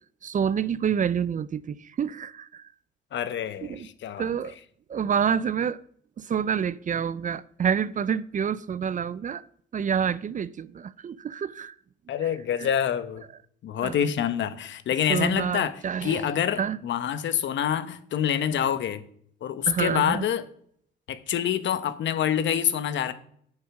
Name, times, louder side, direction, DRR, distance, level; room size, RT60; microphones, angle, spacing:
voice 1, 0.2-2.6 3.6-3.9 4.2-4.5 4.9-5.8 6.2-9.4 9.7-11.7 12.6-12.7 13.8-14.0 15.1-16.3 16.6-16.8 19.7-20.3, right 7 dB, 40° right, 0.5 m, -28 dB
voice 2, 3.1-4.3 12.1-13.2 13.6-19.0 19.4-20.4 21.1-23.1, left 9 dB, 70° left, 1.1 m, -26 dB
8.9 x 7.9 x 6.0 m
cardioid pair, 90°, 20 cm